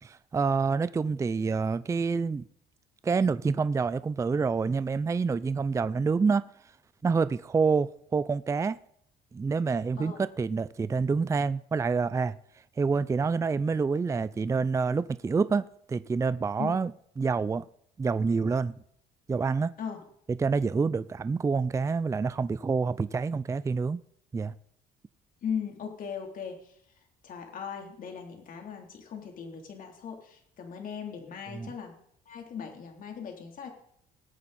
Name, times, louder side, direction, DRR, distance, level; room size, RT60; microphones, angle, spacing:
voice 1, 0.0-2.4 3.0-6.4 7.0-8.8 9.3-12.4 12.8-16.9 17.2-17.6 18.0-18.7 19.3-19.7 20.3-24.0 24.3-24.5 31.5-31.7, right 4 dB, 20° right, 0.4 m, -27 dB
voice 2, 25.4-26.6 27.2-31.9 32.3-33.7, left 7 dB, 55° left, 3.5 m, -38 dB
20.5 x 8.7 x 4.3 m
cardioid pair, 110°, 17 cm